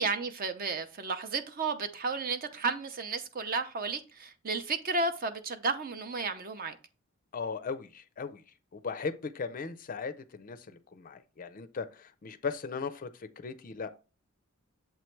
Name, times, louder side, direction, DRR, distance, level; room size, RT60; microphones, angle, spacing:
voice 1, 0.0-6.8, right 4 dB, 40° right, 0.6 m, -33 dB
voice 2, 7.3-8.4 8.7-13.9, left 5 dB, 40° left, 0.4 m, -38 dB
7.7 x 3.1 x 4.5 m
head